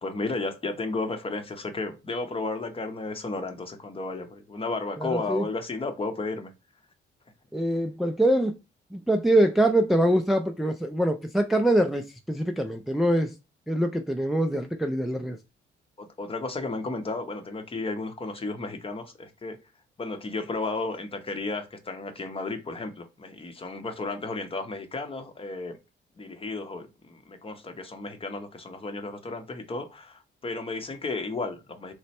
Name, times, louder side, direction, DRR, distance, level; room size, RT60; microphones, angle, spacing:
voice 1, 0.0-6.5 16.0-19.6 20.0-25.8 26.2-31.9, left 3 dB, 30° left, 0.7 m, -33 dB
voice 2, 5.0-5.4 7.5-8.6 8.9-13.3 13.7-15.4, right 1 dB, ahead, 0.3 m, -24 dB
3.1 x 2.1 x 4.2 m
cardioid pair, 90°, 20 cm